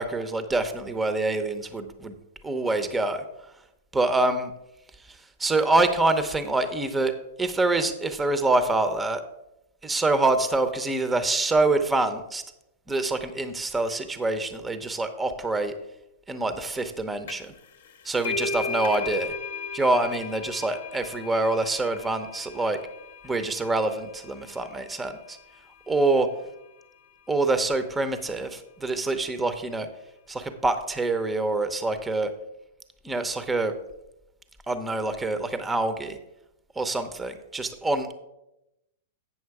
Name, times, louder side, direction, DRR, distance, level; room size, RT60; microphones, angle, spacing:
voice 1, 0.0-2.1 2.4-3.2 3.9-4.5 5.4-7.1 7.4-9.2 9.8-12.4 12.9-15.7 16.3-17.5 18.0-19.3 19.7-22.8 23.2-25.4 25.9-26.3 27.3-29.9 30.3-32.3 33.0-33.7 34.7-36.2 36.8-38.1, right 2 dB, 10° right, 10 dB, 0.7 m, -25 dB
sound 1, 17.3-17.6 17.9-25.2, left 4 dB, 75° left, 0.8 m, -36 dB
8.6 x 6.1 x 4.7 m, 0.89 s
hypercardioid pair, 125°, 0 cm